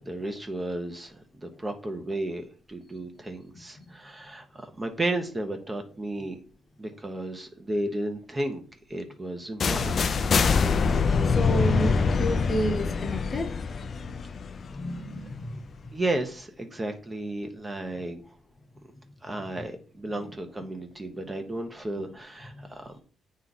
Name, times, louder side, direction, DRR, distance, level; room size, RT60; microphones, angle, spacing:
voice 1, 0.1-6.4 6.8-8.6 8.9-10.2 15.9-18.2 19.2-23.0, right 1 dB, 20° right, 1.0 m, -33 dB
voice 2, 3.5-3.9 11.2-13.6 14.5-15.9 19.5-19.6 20.2-20.3 20.6-20.7 22.0-22.1 22.6-22.7, equal, 35° left, 1.0 m, -32 dB
sound 1, 9.6-15.4, left 5 dB, 50° left, 0.4 m, -25 dB
8.1 x 3.2 x 4.0 m
cardioid pair, 90°, 0 cm